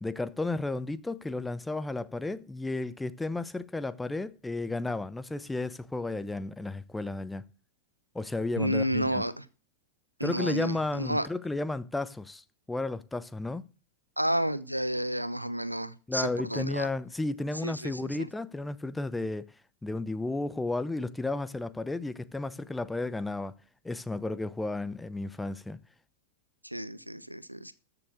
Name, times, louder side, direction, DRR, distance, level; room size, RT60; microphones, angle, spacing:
voice 1, 0.0-7.4 8.1-9.2 10.2-13.6 16.1-19.5 19.8-23.5 23.8-25.8, left 2 dB, 5° left, 0.8 m, -33 dB
voice 2, 8.6-9.4 10.2-11.3 14.2-16.9 17.6-18.3 26.6-27.7, equal, 90° right, 0.8 m, -31 dB
14.0 x 6.9 x 6.4 m
figure-of-eight pair, 90°, 0 cm